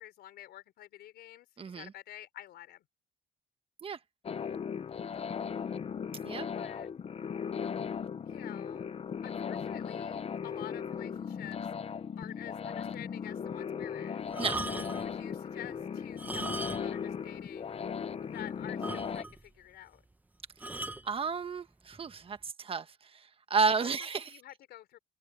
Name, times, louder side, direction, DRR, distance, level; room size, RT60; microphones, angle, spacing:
voice 1, 0.0-2.8 6.5-6.9 8.3-8.8 9.2-11.7 12.2-14.4 14.7-17.8 18.2-20.0 23.8-23.9 24.1-25.0, left 13 dB, 70° left, 4.3 m, -49 dB
voice 2, 1.6-1.9 3.8-4.0 6.2-6.5 14.4-14.7 21.0-24.3, right 5 dB, 35° right, 1.4 m, -32 dB
sound 1, 4.2-19.2, left 7 dB, 35° left, 1.1 m, -37 dB
sound 2, 14.3-15.1 16.1-17.1 17.3-17.5 18.0-18.1 18.3-18.4 18.8-19.5 20.6-21.1 21.9-22.2, right 2 dB, 10° right, 1.1 m, -39 dB
open air
cardioid pair, 110°, 17 cm